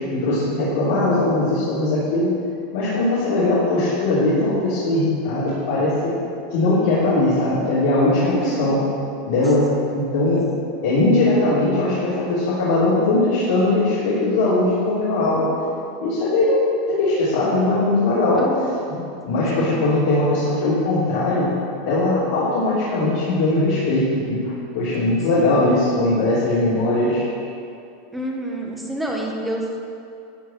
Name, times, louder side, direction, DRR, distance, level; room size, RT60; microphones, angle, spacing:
voice 1, 0.0-2.3 2.7-6.1 6.5-8.8 9.2-10.4 10.8-15.5 16.0-16.6 16.9-18.5 18.9-19.0 19.3-21.5 21.9-27.2, left 2 dB, 65° left, -10 dB, 3.3 m, -20 dB
voice 2, 8.2-8.8 18.3-18.8 19.5-19.9 25.4-25.6 28.1-29.8, right 1 dB, 5° right, -1 dB, 1.3 m, -28 dB
14.0 x 4.7 x 8.9 m, 2.6 s
supercardioid pair, 165°, 0 cm